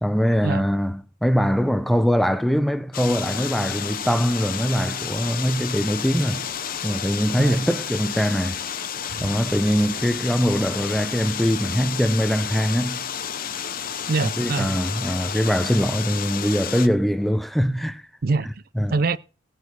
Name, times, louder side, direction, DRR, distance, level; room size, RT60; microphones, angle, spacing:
voice 1, 0.0-6.4 6.8-8.6 9.2-13.0 14.2-18.0 18.8-19.0, equal, ahead, 0.6 m, -22 dB
sound 1, 2.9-16.9, left 8 dB, 50° left, 0.8 m, -31 dB
sound 2, 3.1-16.4, right 1 dB, 20° right, 2.5 m, -53 dB
sound 3, 9.1-12.7 13.1-13.3, right 1 dB, 65° left, 2.4 m, -43 dB
voice 2, 14.1-14.8 18.2-18.6 18.9-19.2, right 4 dB, 50° right, 0.5 m, -24 dB
17.0 x 6.6 x 4.6 m
head